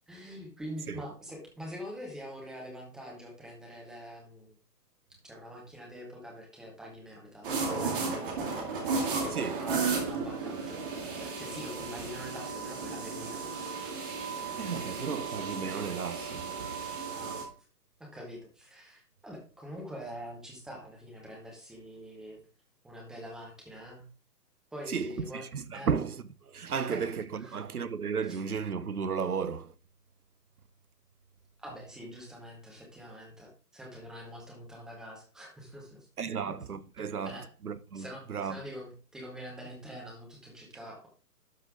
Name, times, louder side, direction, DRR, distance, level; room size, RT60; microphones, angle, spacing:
voice 1, 0.1-4.5 5.2-7.9 8.6-8.7 9.6-13.7 17.1-17.4 18.0-22.4 22.8-24.0 24.7-25.5 25.7-25.9 26.9-27.1 27.4-27.6 28.3-28.4 31.6-36.5 37.0-37.5 37.9-41.1, equal, ahead, 0.8 m, -45 dB
sound 1, 7.4-17.4, right 4 dB, 30° right, 2.3 m, -34 dB
voice 2, 9.3-9.7 14.6-16.8 24.9-29.7 36.2-38.6, right 6 dB, 65° right, 0.9 m, -34 dB
12.0 x 5.4 x 3.7 m
figure-of-eight pair, 135°, 49 cm